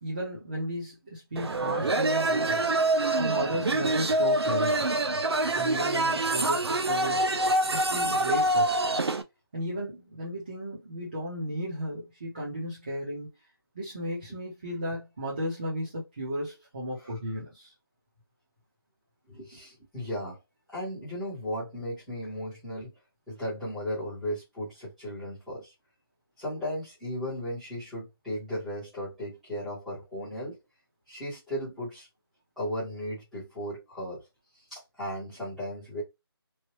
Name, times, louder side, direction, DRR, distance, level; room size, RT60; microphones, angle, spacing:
voice 1, 0.0-2.7 3.2-5.0 5.6-7.2 7.6-8.8 9.5-13.3 13.7-17.7, equal, 25° right, 0.9 m, -34 dB
sound 1, 1.4-9.2, right 2 dB, 85° right, 0.7 m, -26 dB
voice 2, 3.3-3.7 17.0-17.2 19.3-20.4 20.7-22.9 23.3-25.7 26.4-30.6 31.1-32.1 32.6-34.3 34.5-36.0, equal, ahead, 1.0 m, -36 dB
3.1 x 2.2 x 3.0 m
figure-of-eight pair, 175°, 13 cm